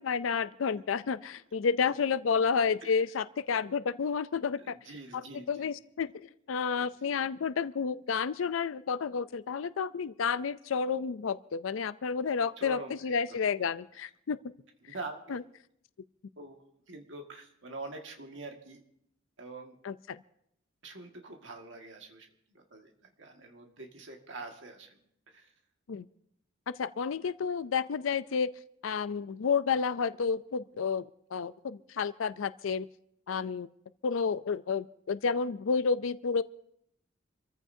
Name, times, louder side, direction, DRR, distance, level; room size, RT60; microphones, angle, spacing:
voice 1, 0.0-4.7 5.3-14.4 15.3-15.4 19.8-20.2 25.9-26.1 26.8-28.5 28.8-31.1 31.3-32.9 33.3-33.7 34.0-36.4, left 5 dB, 85° left, 15 dB, 0.5 m, -30 dB
voice 2, 4.6-5.7 6.8-7.2 12.6-13.4 14.8-15.4 16.4-16.6 16.9-18.8 19.4-19.8 20.8-25.0 25.3-25.5, right 2 dB, 65° right, 3 dB, 1.8 m, -45 dB
27.0 x 14.5 x 2.7 m, 0.75 s
head